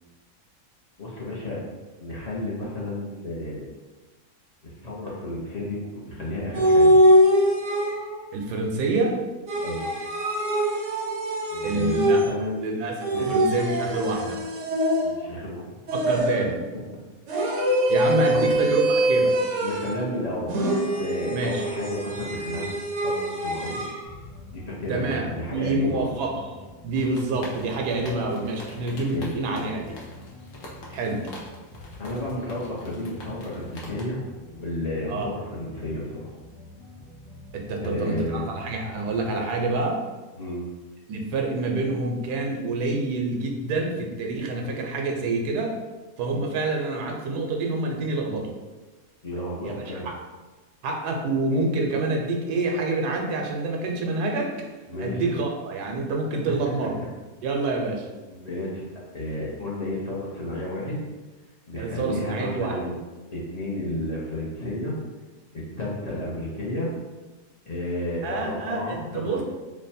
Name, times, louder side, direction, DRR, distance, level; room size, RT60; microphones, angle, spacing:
voice 1, 1.0-1.6 2.0-3.7 4.6-7.0 9.6-9.9 11.5-12.7 13.1-13.3 15.0-15.8 18.3-18.5 19.6-22.6 23.0-23.8 24.5-26.1 28.8-29.3 32.0-36.3 37.8-38.5 40.3-40.6 49.2-50.1 54.9-55.3 58.3-58.9 59.1-61.0 61.7-63.0 63.3-65.0 65.5-66.9 67.6-69.4, left 1 dB, 45° left, -6 dB, 0.5 m, -32 dB
sound 1, 6.5-8.3 9.5-12.5 13.0-15.4 15.9-16.6 17.3-20.1 20.5-24.0, equal, 70° right, 0.8 m, -23 dB
voice 2, 8.3-9.2 11.6-12.2 12.6-14.4 15.9-16.6 17.9-19.4 21.3-21.6 24.9-26.4 26.8-30.0 30.9-31.3 35.1-35.3 37.5-40.0 41.1-45.8 46.2-48.5 49.6-50.2 50.8-54.5 55.0-57.0 57.4-58.1 61.8-62.8 68.2-69.4, right 2 dB, 90° right, 1 dB, 1.2 m, -27 dB
sound 2, 24.0-39.4, left 1 dB, 80° left, 1.5 m, -46 dB
sound 3, 26.9-34.0, left 1 dB, 65° left, 1.0 m, -45 dB
3.2 x 2.2 x 4.1 m, 1.2 s
omnidirectional pair, 1.7 m